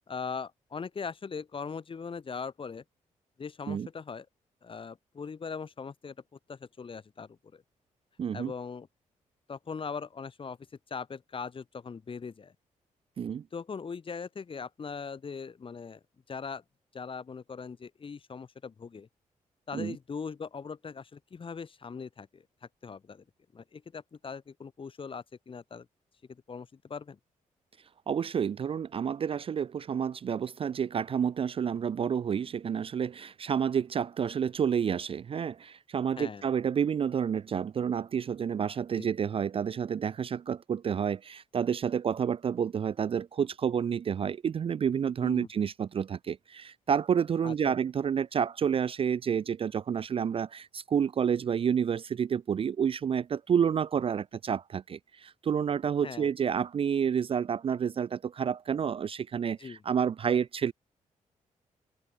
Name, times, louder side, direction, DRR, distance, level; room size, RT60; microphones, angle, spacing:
voice 1, 0.1-2.8 3.4-4.3 4.6-6.1 6.5-7.6 8.3-8.9 9.5-10.6 10.9-12.5 13.5-16.0 16.3-16.6 16.9-19.1 19.7-22.4 22.8-23.2 23.5-25.9 26.3-27.2 36.2-36.4 39.0-39.1 45.2-45.5 47.4-47.8 56.0-56.3 59.6-59.8, left 5 dB, 40° left, 1.2 m, -40 dB
voice 2, 8.2-8.5 13.2-13.4 19.7-20.0 28.1-60.7, right 7 dB, 40° right, 0.4 m, -29 dB
cardioid pair, 85°, 14 cm